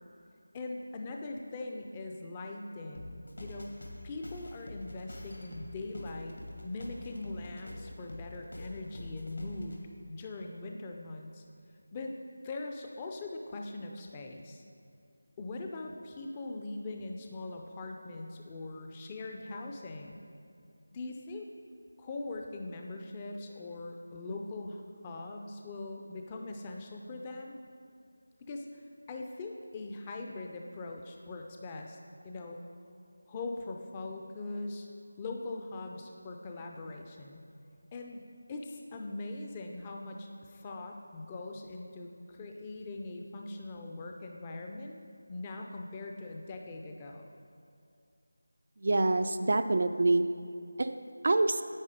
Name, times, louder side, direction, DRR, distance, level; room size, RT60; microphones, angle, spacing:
voice 1, 0.5-3.7 4.0-6.4 6.6-9.8 10.1-11.4 11.9-12.1 12.4-14.6 15.4-20.2 20.9-21.5 22.0-27.6 28.5-32.0 32.2-32.6 33.3-34.9 35.2-37.4 37.9-44.9 45.3-47.3, left 2 dB, 20° left, 2 dB, 0.5 m, -41 dB
sound 1, 2.9-9.8, left 1 dB, 70° left, 2.2 m, -46 dB
voice 2, 48.8-50.3 50.8-51.6, right 2 dB, 50° right, 9 dB, 0.5 m, -26 dB
9.7 x 8.4 x 5.1 m, 2.5 s
figure-of-eight pair, 165°, 0 cm